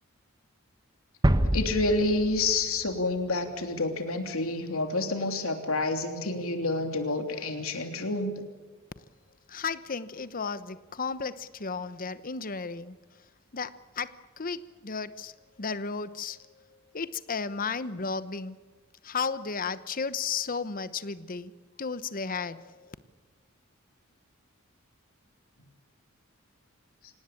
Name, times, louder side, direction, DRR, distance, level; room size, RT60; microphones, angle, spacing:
sound 1, 1.2-3.1, right 1 dB, 20° right, 1.1 m, -27 dB
voice 1, 1.5-8.4, left 2 dB, 75° left, 5 dB, 3.2 m, -28 dB
voice 2, 9.5-13.0 13.5-18.6 19.0-21.5 21.8-22.9, left 5 dB, 40° left, 14 dB, 1.0 m, -34 dB
26.0 x 18.5 x 8.7 m, 1.3 s
head